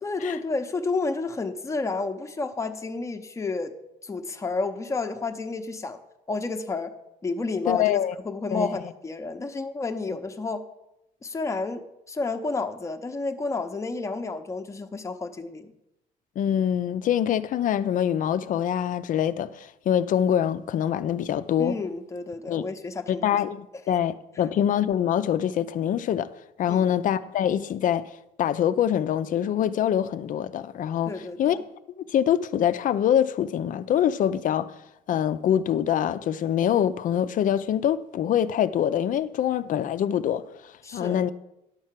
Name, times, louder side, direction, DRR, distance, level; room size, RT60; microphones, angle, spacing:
voice 1, 0.0-3.7 4.0-6.0 6.3-6.9 7.2-10.6 11.2-15.7 21.6-23.4 26.7-26.9 31.1-31.6 40.8-41.3, left 3 dB, 15° left, 0.8 m, -31 dB
voice 2, 7.7-8.1 8.5-8.7 16.4-21.8 22.5-22.7 23.1-26.3 26.6-28.1 28.4-31.1 31.4-31.6 32.0-34.7 35.1-40.4 40.9-41.3, left 10 dB, 50° left, 0.5 m, -24 dB
10.5 x 4.4 x 7.4 m
cardioid pair, 110°, 17 cm